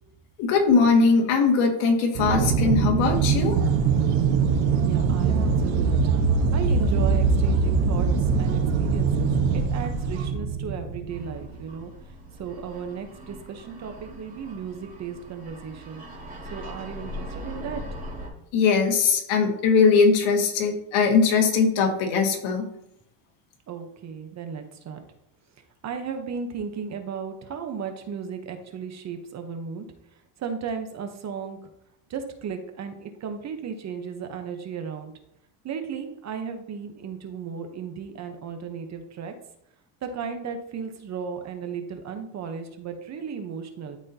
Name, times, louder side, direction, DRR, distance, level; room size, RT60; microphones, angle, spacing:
voice 1, 0.4-3.6 18.5-22.7, left 5 dB, 70° left, 2 dB, 1.8 m, -20 dB
Aircraft, 2.1-11.6, right 5 dB, 85° right, 1.2 m, -22 dB
sound 1, 3.0-10.3, right 2 dB, 65° right, 1.4 m, -41 dB
voice 2, 4.8-6.1 6.5-8.1 8.4-16.0 16.5-18.0 23.7-25.0 25.8-29.9 30.4-31.6 32.1-35.1 35.6-39.3 40.0-44.0, right 6 dB, 35° right, 6 dB, 0.8 m, -35 dB
sound 2, 11.1-18.3, equal, 15° right, 1.8 m, -40 dB
12.0 x 4.2 x 2.7 m, 0.78 s
cardioid pair, 145°, 50 cm